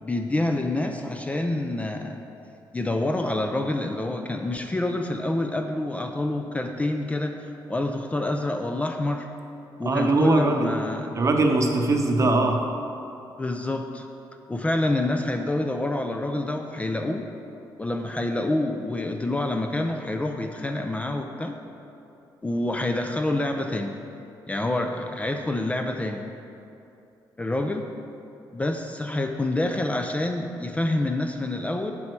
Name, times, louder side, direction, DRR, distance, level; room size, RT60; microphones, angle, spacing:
voice 1, 0.0-2.2 2.7-9.3 9.8-11.1 13.4-14.1 14.5-17.3 17.8-21.6 22.4-23.9 24.5-26.2 27.4-27.9 28.5-31.9, left 2 dB, 15° left, 4 dB, 0.4 m, -27 dB
voice 2, 9.8-10.7 11.1-12.6, right 2 dB, 35° right, 3 dB, 0.8 m, -21 dB
7.7 x 5.9 x 4.5 m, 2.8 s
cardioid pair, 105°, 9 cm